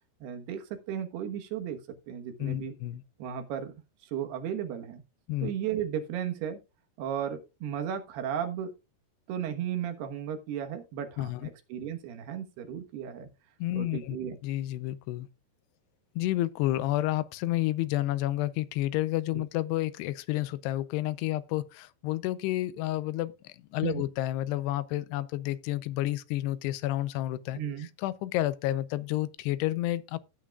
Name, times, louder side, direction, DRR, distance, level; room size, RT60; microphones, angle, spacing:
voice 1, 0.2-2.7 3.2-3.7 4.1-5.0 5.4-6.6 7.0-8.7 9.3-13.3 13.7-14.4 19.3-19.4 23.8-24.0 27.6-27.9, right 9 dB, 80° right, 3.3 m, -35 dB
voice 2, 2.4-3.0 5.3-5.5 11.2-11.5 13.6-14.2 14.4-15.3 16.2-30.2, left 15 dB, 90° left, 2.8 m, -30 dB
16.0 x 8.6 x 2.4 m
omnidirectional pair, 4.6 m